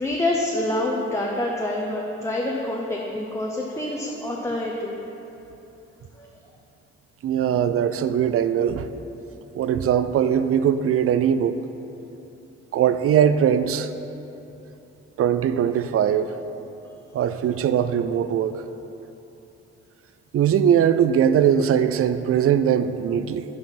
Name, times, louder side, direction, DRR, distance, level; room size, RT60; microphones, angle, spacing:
voice 1, 0.0-4.9 6.2-6.3, left 1 dB, 10° left, -3 dB, 0.8 m, -26 dB
voice 2, 7.2-8.9 9.5-11.6 12.7-13.9 15.2-16.3 17.1-18.6 20.3-23.5, right 9 dB, 45° right, 12 dB, 0.4 m, -20 dB
5.8 x 5.2 x 5.7 m, 3.0 s
supercardioid pair, 45°, 31 cm